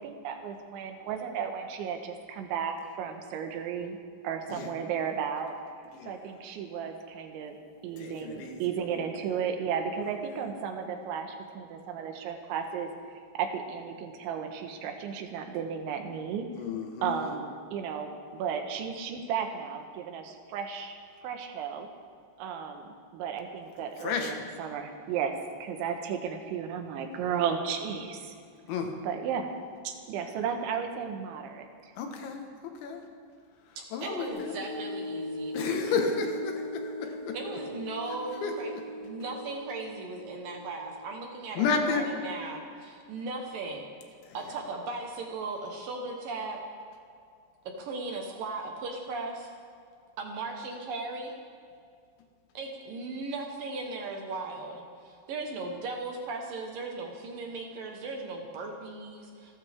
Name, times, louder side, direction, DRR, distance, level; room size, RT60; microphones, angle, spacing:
voice 1, 0.0-4.0 4.2-5.5 6.1-7.6 7.8-12.9 13.4-16.5 17.0-21.0 21.2-21.9 22.4-25.3 25.6-28.3 29.0-29.5 29.9-31.9, right 7 dB, 90° right, 5 dB, 3.6 m, -34 dB
voice 2, 8.0-8.6 16.6-17.4 24.0-24.5 28.7-28.9 32.0-32.4 32.8-33.0 33.9-34.5 35.5-37.4 38.4-38.5 41.6-42.1, left 5 dB, 80° left, 3 dB, 3.8 m, -31 dB
voice 3, 33.8-36.0 37.3-38.7 39.0-43.9 44.3-46.6 47.8-49.5 50.2-51.3 52.5-59.6, right 3 dB, 65° right, 2 dB, 2.5 m, -37 dB
sound 1, 34.3-41.0, left 1 dB, 20° left, 4.6 m, -39 dB
28.5 x 12.5 x 3.6 m, 2.3 s
omnidirectional pair, 5.2 m